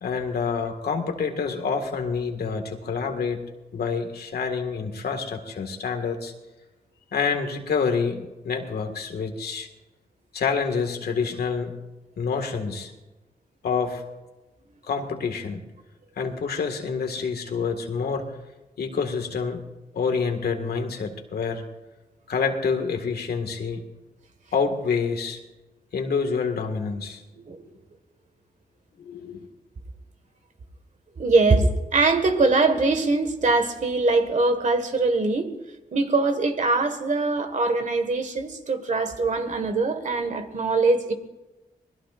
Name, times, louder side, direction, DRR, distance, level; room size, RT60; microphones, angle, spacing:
voice 1, 0.0-3.4 3.7-6.3 7.1-9.7 10.3-11.8 12.2-12.9 13.6-14.0 14.9-15.6 16.2-18.3 18.8-19.6 19.9-21.6 22.3-23.8 24.5-25.4 25.9-27.2 29.0-29.5, left 5 dB, 80° left, 4 dB, 1.9 m, -27 dB
voice 2, 31.2-35.5 35.9-41.1, right 3 dB, 50° right, 7 dB, 1.7 m, -22 dB
26.5 x 20.5 x 2.5 m, 1.1 s
wide cardioid pair, 110°, 16 cm